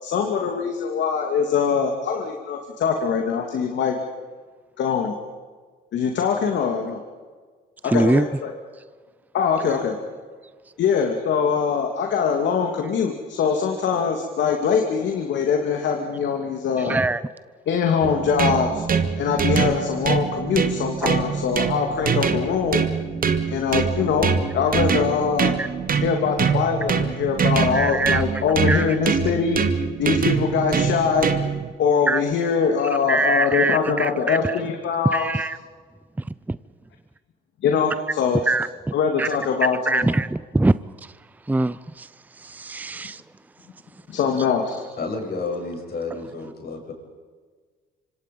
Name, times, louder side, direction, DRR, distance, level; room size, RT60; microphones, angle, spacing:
voice 1, 0.0-4.0 4.8-5.1 5.9-7.0 7.8-8.5 9.3-10.0 10.8-17.0 17.7-18.8 19.2-22.9 23.5-25.5 26.0-29.6 30.0-31.3 31.8-35.3 37.6-38.4 38.9-40.1 44.1-44.8, left 6 dB, 65° left, 3 dB, 2.7 m, -23 dB
voice 2, 7.9-8.3 16.8-17.2 21.0-21.1 25.6-25.7 27.7-28.2 28.7-28.9 32.1-32.2 33.1-34.5 35.1-35.6 36.5-36.6 38.5-38.7 39.2-39.3 39.9-40.7 41.0-41.1 41.5-42.1 42.4-43.2, right 2 dB, 10° right, 16 dB, 0.6 m, -23 dB
sound 1, 18.0-31.7, right 6 dB, 45° right, 2.2 m, -24 dB
voice 3, 45.0-46.9, left 3 dB, 50° left, 1 dB, 7.8 m, -30 dB
26.5 x 25.5 x 5.5 m, 1.5 s
cardioid pair, 85°, 20 cm